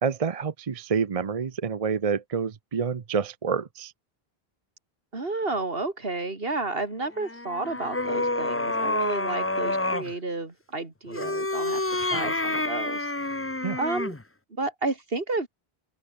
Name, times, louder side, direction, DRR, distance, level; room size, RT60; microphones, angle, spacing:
voice 1, 0.0-3.9 12.1-12.2 13.6-13.8, right 6 dB, 40° right, 0.7 m, -28 dB
voice 2, 5.1-13.1 13.8-14.1 14.5-15.5, right 3 dB, 65° right, 3.2 m, -31 dB
sound 1, 7.1-10.1 11.1-14.2, left 2 dB, 15° left, 0.8 m, -28 dB
open air
omnidirectional pair, 1.0 m